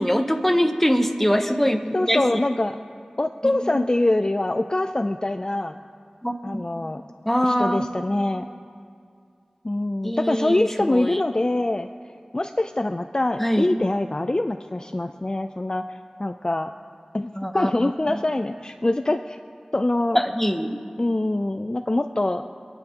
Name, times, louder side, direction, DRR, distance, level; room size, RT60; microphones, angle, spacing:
voice 1, 0.0-2.4 3.4-3.8 6.2-6.6 7.2-7.8 10.0-11.2 13.4-13.7 17.3-18.2 20.1-20.8, equal, 10° left, 5 dB, 1.0 m, -23 dB
voice 2, 1.9-2.8 3.2-5.8 6.4-7.0 7.4-8.5 9.6-11.9 12.3-16.7 17.1-19.4 19.7-20.2 21.0-22.4, left 2 dB, 35° left, 8 dB, 0.4 m, -24 dB
27.0 x 10.0 x 3.0 m, 2.3 s
wide cardioid pair, 45°, 2 cm